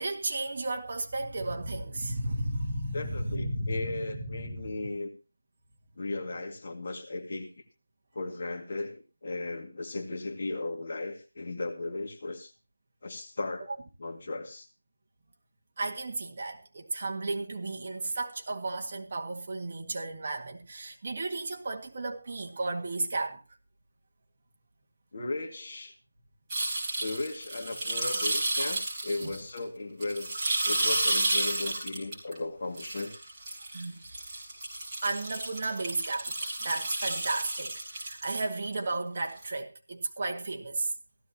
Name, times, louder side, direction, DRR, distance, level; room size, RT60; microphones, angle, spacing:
voice 1, 0.0-4.7 15.8-23.4 29.2-29.3 33.7-34.0 35.0-40.9, right 2 dB, 30° right, 1.9 m, -34 dB
voice 2, 2.9-5.1 6.0-7.5 8.1-12.5 13.0-13.7 14.0-14.7 25.1-25.9 27.0-30.3 30.6-33.1, left 2 dB, 35° left, 2.1 m, -36 dB
sound 1, 26.5-29.6 30.0-32.4 32.8-38.7 39.4-39.5, right 2 dB, 10° right, 4.4 m, -31 dB
16.5 x 14.0 x 2.9 m
figure-of-eight pair, 180°, 0 cm